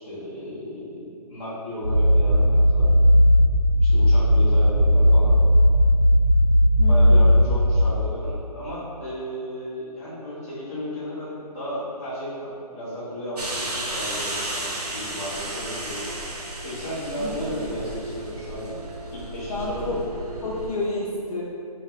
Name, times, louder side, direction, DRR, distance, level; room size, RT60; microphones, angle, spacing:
voice 1, 0.0-2.9 3.8-5.4 6.9-16.2 16.6-18.8 19.1-20.0, equal, 20° left, -11 dB, 0.7 m, -34 dB
sound 1, 1.8-7.8, equal, 65° right, 1.0 m, -17 dB
voice 2, 6.8-7.2 17.2-17.5 19.5-20.0 20.4-21.4, left 2 dB, 65° left, -4 dB, 0.5 m, -30 dB
sound 2, 13.4-20.7, right 1 dB, 85° right, 0.6 m, -33 dB
2.2 x 2.0 x 3.5 m, 2.5 s
figure-of-eight pair, 155°, 20 cm